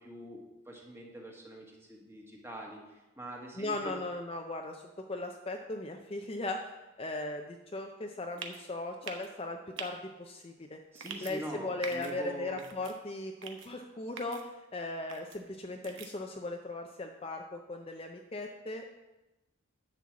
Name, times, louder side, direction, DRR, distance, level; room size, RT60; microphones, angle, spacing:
voice 1, 0.0-4.0 10.9-12.6, right 1 dB, 10° right, -1 dB, 1.5 m, -44 dB
voice 2, 3.6-6.7 7.0-10.8 11.2-19.0, left 2 dB, 25° left, 3 dB, 0.5 m, -38 dB
sound 1, 8.4-8.6 9.0-9.3 9.8-9.9 10.9-11.3 11.8-12.1 12.6-12.9 13.4-13.7 14.2-14.4 15.1-15.4 15.8-16.1, right 6 dB, 60° right, 1.1 m, -43 dB
11.0 x 4.5 x 7.3 m, 1.0 s
head